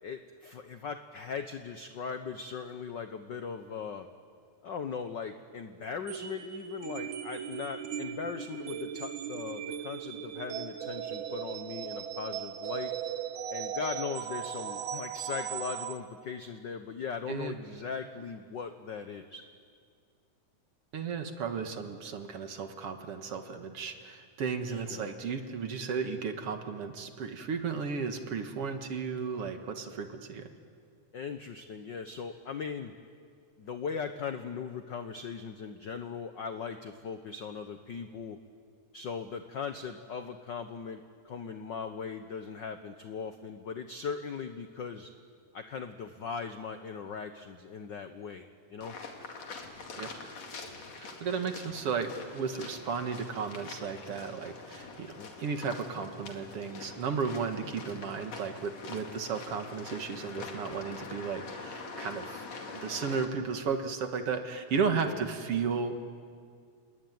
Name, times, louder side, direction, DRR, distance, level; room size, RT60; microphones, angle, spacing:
voice 1, 0.0-4.1 4.6-12.9 13.5-19.4 24.7-25.1 31.1-32.9 33.6-38.4 38.9-45.1 45.5-49.0 54.9-55.3 59.1-59.2 65.1-65.2, left 6 dB, 80° left, 8 dB, 1.0 m, -39 dB
sound 1, 6.1-16.0, right 9 dB, 80° right, 2.6 m, -38 dB
voice 2, 20.9-30.5 50.0-50.1 51.0-62.5 62.7-66.1, right 5 dB, 55° right, 6 dB, 2.3 m, -34 dB
sound 2, 48.8-63.3, left 4 dB, 60° left, 3.4 m, -44 dB
29.5 x 21.0 x 9.4 m, 2.2 s
omnidirectional pair, 3.4 m